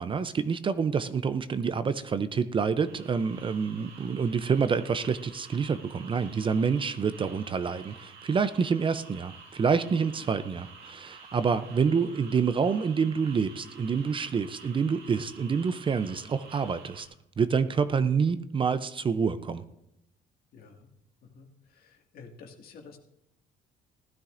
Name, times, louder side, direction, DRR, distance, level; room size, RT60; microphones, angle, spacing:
voice 1, 0.0-17.1 17.4-19.6, right 6 dB, 30° right, 12 dB, 0.5 m, -27 dB
sound 1, 2.8-17.1, right 5 dB, 75° right, 2.0 m, -50 dB
voice 2, 20.5-20.9 21.2-23.0, left 5 dB, 65° left, 2 dB, 2.0 m, -51 dB
15.5 x 12.5 x 2.6 m, 0.80 s
cardioid pair, 110°, 17 cm